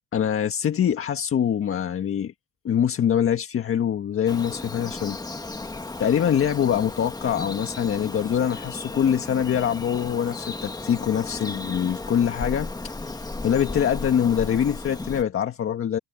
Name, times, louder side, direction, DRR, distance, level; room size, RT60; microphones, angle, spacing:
voice 1, 0.1-2.3 2.6-5.2 6.0-16.0, left 9 dB, 45° left, 1.6 m, -24 dB
Bird vocalization bird call bird song, 4.3-15.2, left 2 dB, 10° left, 1.6 m, -35 dB
cardioid pair, 130°, 31 cm